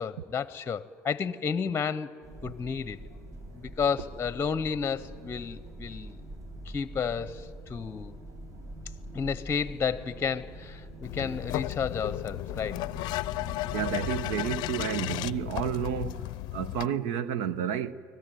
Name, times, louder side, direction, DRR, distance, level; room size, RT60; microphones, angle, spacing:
voice 1, 0.0-2.2 2.4-3.0 3.5-6.2 6.6-8.2 9.1-12.9, left 6 dB, 30° left, 0.8 m, -32 dB
sound 1, 2.2-14.8, right 1 dB, 45° right, 6.8 m, -44 dB
voice 2, 8.7-9.1 13.7-17.9, right 8 dB, 80° right, 1.0 m, -31 dB
sound 2, 11.0-16.9, left 18 dB, 70° left, 0.5 m, -34 dB
24.5 x 18.0 x 9.2 m
supercardioid pair, 80°, 8 cm